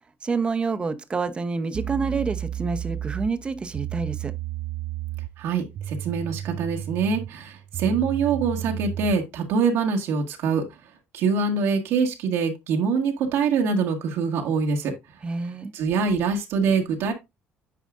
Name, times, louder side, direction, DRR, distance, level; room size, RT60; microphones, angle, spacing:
voice 1, 0.2-4.3 15.2-15.7, right 4 dB, 25° right, 0.8 m, -28 dB
sound 1, 1.7-9.3, right 11 dB, 50° right, 0.3 m, -33 dB
voice 2, 5.4-10.6 11.1-14.9 15.7-17.1, right 5 dB, 80° right, 1.5 m, -24 dB
9.2 x 4.8 x 2.5 m
cardioid pair, 130°, 4 cm